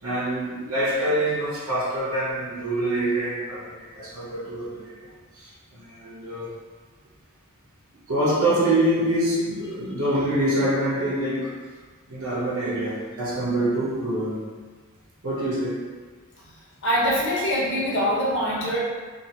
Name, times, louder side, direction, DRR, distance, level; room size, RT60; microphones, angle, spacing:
voice 1, 0.0-5.1 5.3-6.6 8.1-11.5 12.1-14.5 15.2-15.9, right 1 dB, 65° right, -6 dB, 0.9 m, -25 dB
voice 2, 16.8-18.8, equal, 55° left, -6 dB, 0.8 m, -23 dB
2.8 x 2.6 x 2.9 m, 1.4 s
head